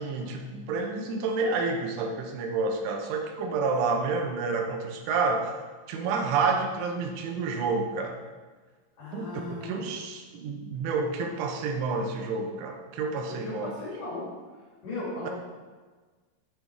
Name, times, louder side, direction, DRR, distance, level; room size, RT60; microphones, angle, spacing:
voice 1, 0.0-5.5 5.9-8.2 9.1-13.8 15.3-15.4, right 4 dB, 85° right, 3 dB, 3.5 m, -29 dB
voice 2, 9.0-9.9 13.4-14.3 14.8-15.3, left 2 dB, 50° left, -7 dB, 3.9 m, -36 dB
8.4 x 7.9 x 4.7 m, 1.4 s
omnidirectional pair, 5.3 m